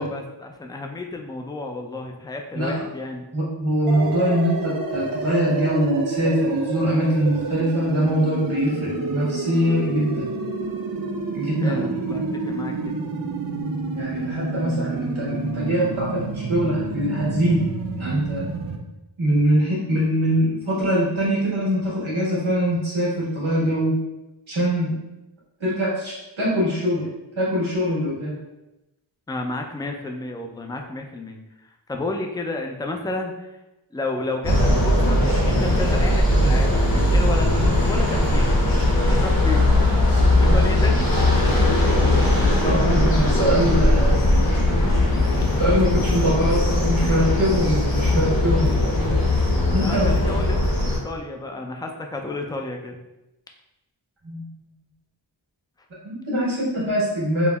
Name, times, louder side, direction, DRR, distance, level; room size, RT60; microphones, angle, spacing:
voice 1, 0.0-3.3 11.6-13.1 29.3-33.6 33.9-38.6 39.1-39.9 40.3-41.1 47.0-47.4 49.8-50.6 51.0-53.0, left 2 dB, 10° left, 3 dB, 0.3 m, -31 dB
voice 2, 3.3-10.3 11.3-12.3 13.9-17.6 18.0-18.5 19.2-24.0 24.5-24.9 25.6-27.1 27.3-28.3 40.4-40.7 42.6-44.2 45.6-49.2 49.7-50.3 54.2-54.5 56.0-57.5, equal, 90° right, -6 dB, 1.3 m, -23 dB
sound 1, 3.9-18.8, right 3 dB, 50° right, 0.5 m, -29 dB
sound 2, 34.4-51.0, left 1 dB, 50° left, 0.9 m, -19 dB
5.2 x 2.0 x 2.3 m, 0.96 s
wide cardioid pair, 40°, 46 cm